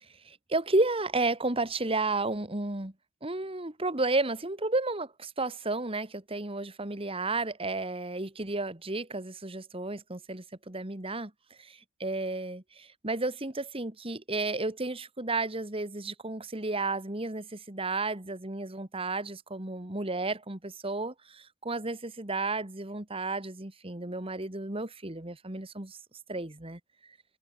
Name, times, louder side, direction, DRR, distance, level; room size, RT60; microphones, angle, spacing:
voice 1, 0.0-2.9 3.2-11.3 11.6-26.0 26.3-26.8, right 2 dB, 25° right, 1.9 m, -32 dB
head